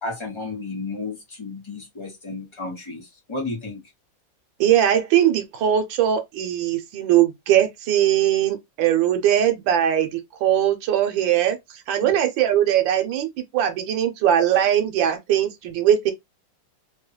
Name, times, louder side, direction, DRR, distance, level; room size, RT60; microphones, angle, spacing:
voice 1, 0.0-3.8 12.0-12.1, left 3 dB, 20° left, 0.9 m, -33 dB
voice 2, 4.6-11.6 11.9-16.1, right 10 dB, 90° right, 1.4 m, -20 dB
3.3 x 2.3 x 2.9 m
omnidirectional pair, 2.0 m